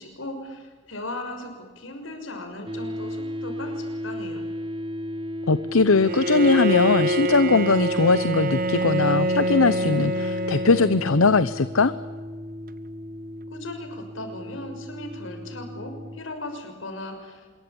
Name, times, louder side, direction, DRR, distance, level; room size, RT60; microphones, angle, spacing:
voice 1, 0.0-4.5 13.5-17.5, left 2 dB, 70° left, 5 dB, 6.2 m, -37 dB
sound 1, 2.7-16.2, equal, 25° right, 1.7 m, -35 dB
voice 2, 5.5-11.9, left 4 dB, 85° left, 14 dB, 0.8 m, -20 dB
Bowed string instrument, 6.0-11.5, right 1 dB, 45° right, 1.0 m, -26 dB
26.0 x 22.5 x 8.8 m, 1.4 s
head